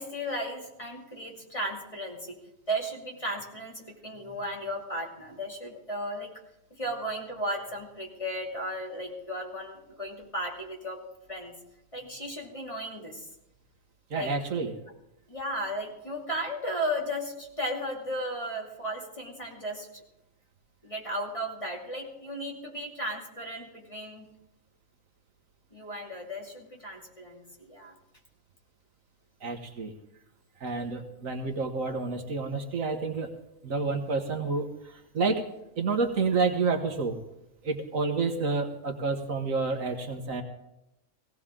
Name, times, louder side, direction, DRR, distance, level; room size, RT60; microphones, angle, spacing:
voice 1, 0.0-2.4 2.7-6.3 6.7-11.0 11.3-11.5 11.9-13.3 14.1-14.3 15.3-20.0 20.8-24.3 25.7-28.0, equal, 20° left, -1 dB, 2.6 m, -35 dB
voice 2, 14.1-14.8 29.4-29.9 30.6-33.3 33.6-35.4 35.8-37.2 37.6-40.4, right 4 dB, 70° right, 4 dB, 1.7 m, -29 dB
17.5 x 17.0 x 3.8 m, 0.86 s
omnidirectional pair, 1.5 m